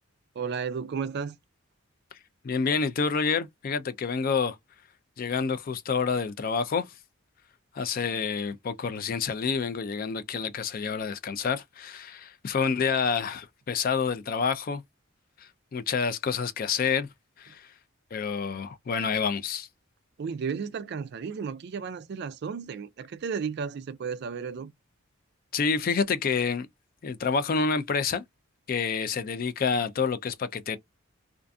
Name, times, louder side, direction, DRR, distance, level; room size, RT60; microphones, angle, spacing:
voice 1, 0.4-1.4 20.2-24.7, right 6 dB, 50° right, 0.3 m, -33 dB
voice 2, 2.4-4.6 5.2-6.9 7.7-14.8 15.7-17.1 17.4-17.7 18.1-19.7 25.5-26.7 27.0-28.2 28.7-30.8, left 5 dB, 40° left, 0.3 m, -28 dB
2.5 x 2.4 x 2.2 m
head